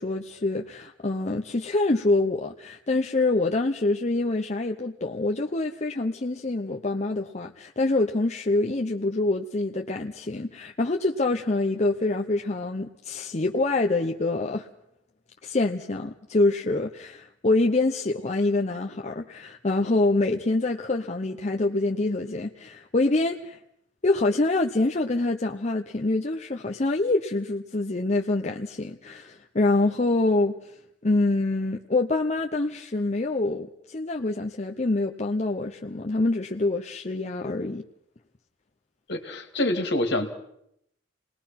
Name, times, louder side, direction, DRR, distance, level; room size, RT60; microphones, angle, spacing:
voice 1, 0.0-14.7 15.4-23.6 24.0-30.6 31.0-37.8, left 2 dB, 35° left, 2 dB, 0.9 m, -25 dB
voice 2, 39.1-40.4, left 1 dB, 60° left, 5 dB, 2.5 m, -26 dB
29.0 x 19.5 x 5.9 m, 0.77 s
head